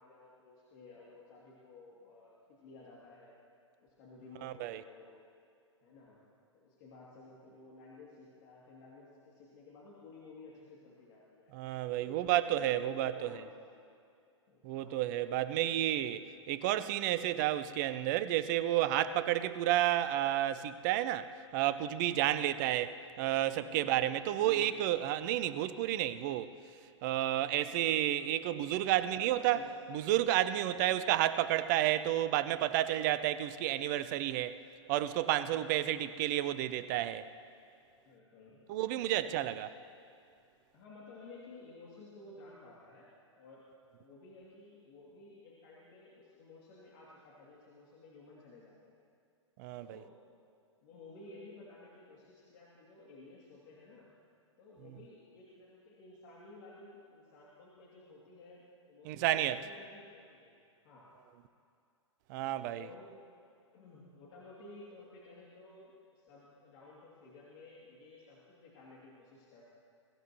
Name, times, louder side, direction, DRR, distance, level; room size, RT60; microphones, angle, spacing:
voice 1, 0.0-3.3 3.8-5.2 5.8-6.2 6.5-11.5 12.0-13.9 14.5-15.0 22.0-22.5 23.7-24.9 28.9-29.7 30.6-31.0 35.5-35.9 38.1-38.6 40.7-43.1 43.3-43.7 44.0-49.0 49.8-50.2 50.8-54.1 54.6-60.5 60.8-61.1 62.7-63.2 63.7-69.6, left 3 dB, 40° left, -6 dB, 2.7 m, -54 dB
voice 2, 4.4-4.8 11.5-13.4 14.6-22.9 23.2-26.5 27.0-29.6 29.9-34.6 34.9-37.3 38.7-39.7 49.6-50.0 59.0-59.6 62.3-62.9, right 13 dB, 40° right, 14 dB, 0.6 m, -31 dB
22.0 x 16.0 x 3.1 m, 2.5 s
figure-of-eight pair, 105°, 16 cm